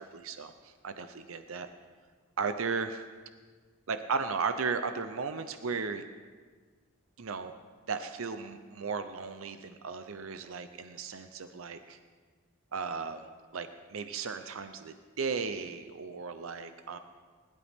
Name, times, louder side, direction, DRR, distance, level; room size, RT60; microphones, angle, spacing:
voice 1, 0.0-1.7 2.4-3.0 3.9-6.0 7.2-7.5 7.9-12.0 12.7-13.3 13.5-17.0, right 5 dB, 90° right, 9 dB, 0.7 m, -35 dB
20.5 x 11.5 x 3.6 m, 1.5 s
head